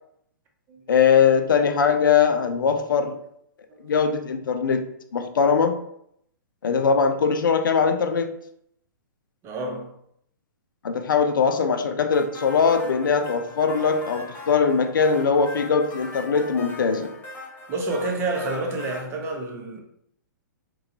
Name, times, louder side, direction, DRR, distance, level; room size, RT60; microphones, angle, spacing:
voice 1, 0.9-3.2 3.8-4.9 5.1-5.8 6.6-8.3 10.8-17.1, left 6 dB, 80° left, 0.4 m, -21 dB
voice 2, 9.4-9.9 17.7-19.8, right 2 dB, 25° right, 0.5 m, -29 dB
sound 1, 12.1-19.0, left 2 dB, 20° left, 0.7 m, -40 dB
2.3 x 2.2 x 2.8 m
hypercardioid pair, 125°, 11 cm